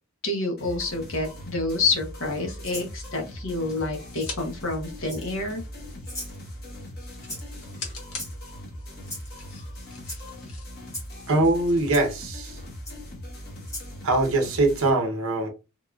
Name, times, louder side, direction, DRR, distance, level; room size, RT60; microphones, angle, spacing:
voice 1, 0.2-5.6, left 3 dB, 65° left, 1.0 m, -28 dB
sound 1, 0.6-14.9, equal, 45° left, 1.1 m, -40 dB
Rattle (instrument), 2.6-2.9 4.2-4.3 5.0-5.5 6.0-6.4 7.3-7.6 8.1-8.6 9.0-9.3 10.0-10.2 10.9-11.1 11.9-12.0 12.8-13.0 13.6-13.9, left 1 dB, 15° left, 0.9 m, -38 dB
sound 2, 3.0-4.4 4.8-12.1, left 4 dB, 85° left, 1.3 m, -44 dB
voice 2, 11.3-12.6 14.0-15.5, right 2 dB, 65° right, 0.9 m, -22 dB
3.6 x 2.3 x 2.4 m
head